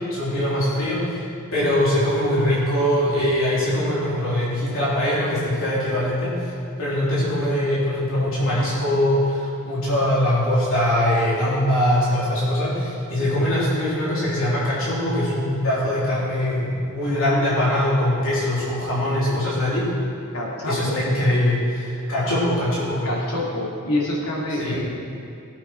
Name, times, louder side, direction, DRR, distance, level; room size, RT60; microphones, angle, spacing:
voice 1, 0.1-1.2 1.5-6.5 6.8-19.9 20.7-23.0 24.6-24.8, left 1 dB, 65° left, -8 dB, 3.5 m, -22 dB
voice 2, 20.3-21.0 23.0-24.9, left 1 dB, 85° left, -3 dB, 2.8 m, -27 dB
17.0 x 8.8 x 4.7 m, 2.6 s
head